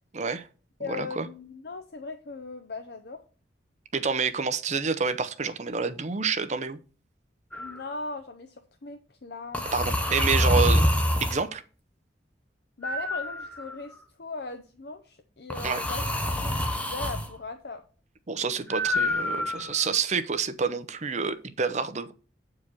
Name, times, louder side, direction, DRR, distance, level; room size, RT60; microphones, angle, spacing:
voice 1, 0.1-0.4 0.9-1.3 3.9-6.8 9.7-10.8 11.2-11.6 15.6-15.8 18.3-22.1, right 5 dB, 40° right, 0.6 m, -28 dB
voice 2, 0.8-3.2 7.6-9.7 12.8-17.8, left 3 dB, 60° left, 0.7 m, -39 dB
sound 1, 7.5-7.8 9.5-11.4 12.8-13.9 15.5-17.3 18.7-19.9, left 1 dB, 10° left, 0.8 m, -26 dB
8.4 x 4.8 x 6.1 m
head